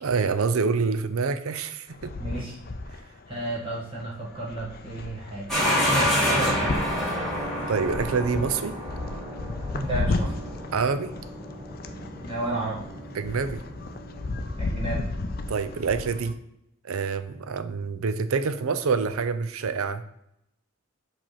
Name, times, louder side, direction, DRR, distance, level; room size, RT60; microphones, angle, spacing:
voice 1, 0.0-2.1 7.7-8.7 10.7-11.1 13.1-13.6 15.5-16.3 16.8-20.0, right 5 dB, 80° right, 11 dB, 0.5 m, -26 dB
sound 1, 1.9-16.3, left 2 dB, 45° left, 0.4 m, -34 dB
voice 2, 2.2-2.6 3.3-5.5 5.9-6.8 9.7-10.3 12.2-12.8 14.6-15.0, right 2 dB, 25° right, -5 dB, 1.9 m, -32 dB
sound 2, 5.5-16.2, equal, ahead, 1.8 m, -30 dB
5.0 x 3.5 x 5.6 m, 0.78 s
head